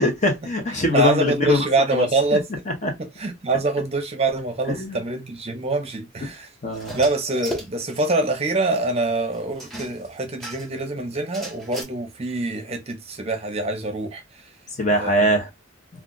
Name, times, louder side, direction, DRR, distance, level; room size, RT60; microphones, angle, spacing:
voice 1, 0.0-1.7 1.9-2.0 2.8-2.9 4.7-5.0 6.2-6.3 6.6-7.0 14.8-15.5, equal, 35° left, 0.8 m, -22 dB
voice 2, 0.9-2.5 3.2-6.5 6.9-14.5 14.9-15.4, right 2 dB, 30° right, 0.7 m, -25 dB
sound 1, 6.7-8.2 8.5-8.6 8.7-8.8 9.6-10.8 11.3-11.8, right 1 dB, ahead, 1.0 m, -35 dB
2.4 x 2.3 x 3.8 m
head